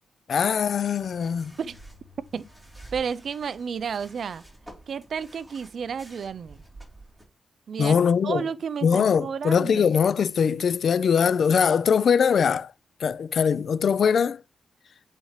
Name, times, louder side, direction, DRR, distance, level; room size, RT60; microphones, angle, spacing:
voice 1, 0.3-1.5 7.8-8.4 8.8-12.7 13.0-14.4, left 7 dB, 65° left, 0.4 m, -22 dB
sound 1, 0.9-7.3, right 1 dB, 5° right, 3.6 m, -49 dB
voice 2, 2.9-4.4 4.9-6.6 7.7-8.0 8.2-9.9, right 6 dB, 65° right, 0.4 m, -31 dB
8.0 x 4.0 x 3.2 m
cardioid pair, 75°, 0 cm